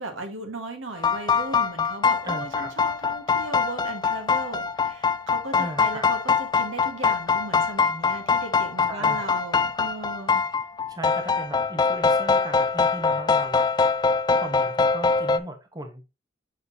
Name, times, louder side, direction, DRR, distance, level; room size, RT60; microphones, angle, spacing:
voice 1, 0.0-10.4, right 2 dB, 75° right, 1.4 m, -37 dB
sound 1, 1.0-15.4, left 5 dB, 20° left, 0.3 m, -23 dB
voice 2, 2.2-2.7 5.6-6.1 8.9-9.3 10.9-13.7 14.3-16.0, right 1 dB, 20° right, 0.8 m, -37 dB
6.4 x 5.6 x 2.6 m
head